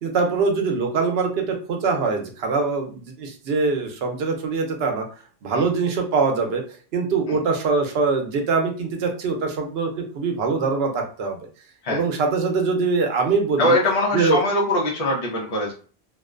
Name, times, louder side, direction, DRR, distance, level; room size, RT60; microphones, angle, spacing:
voice 1, 0.0-5.0 5.4-6.6 6.9-11.4 11.9-13.8 14.1-14.4, right 4 dB, 75° right, 3 dB, 0.8 m, -23 dB
voice 2, 13.6-15.7, left 1 dB, 40° left, -3 dB, 0.7 m, -22 dB
2.5 x 2.1 x 2.3 m, 0.39 s
omnidirectional pair, 1.0 m